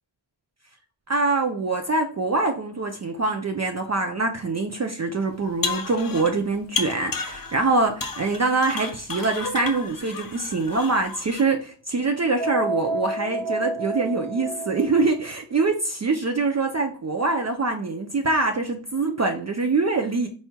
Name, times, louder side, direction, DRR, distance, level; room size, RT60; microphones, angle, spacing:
voice 1, 1.1-20.3, right 3 dB, 35° right, 4 dB, 0.5 m, -24 dB
sound 1, 5.4-6.4 6.8-7.7 8.0-11.4, left 4 dB, 45° left, 0.7 m, -32 dB
sound 2, 12.4-15.2, right 2 dB, 5° left, 0.8 m, -29 dB
4.4 x 4.2 x 2.2 m, 0.40 s
wide cardioid pair, 110°, 47 cm